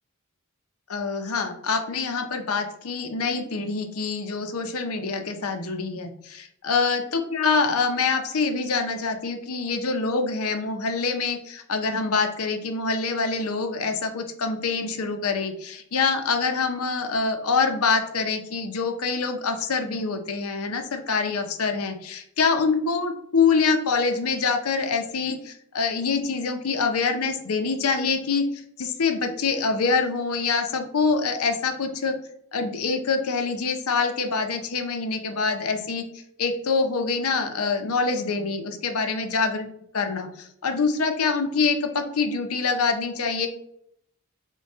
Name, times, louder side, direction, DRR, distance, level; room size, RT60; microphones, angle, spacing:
voice 1, 0.9-32.1 32.5-36.1 36.4-39.7 39.9-43.5, left 4 dB, 75° left, 6 dB, 0.6 m, -25 dB
5.3 x 2.3 x 3.5 m, 0.71 s
head